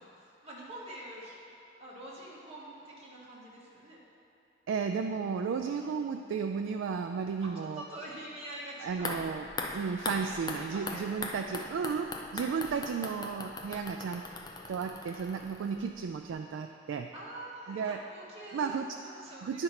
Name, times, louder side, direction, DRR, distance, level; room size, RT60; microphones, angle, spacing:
voice 1, 0.0-1.4 1.8-4.0 7.4-9.2 9.5-11.6 12.1-12.2 17.1-19.6, right 1 dB, 35° right, -6 dB, 1.7 m, -46 dB
voice 2, 4.7-7.8 8.8-9.5 9.7-14.2 14.7-17.1 17.7-18.0 18.5-19.0 19.4-19.6, right 6 dB, 85° right, 5 dB, 0.3 m, -33 dB
sound 1, 8.9-16.0 16.3-16.4, left 2 dB, 20° left, 0.5 m, -40 dB
9.2 x 4.5 x 5.7 m, 2.9 s
head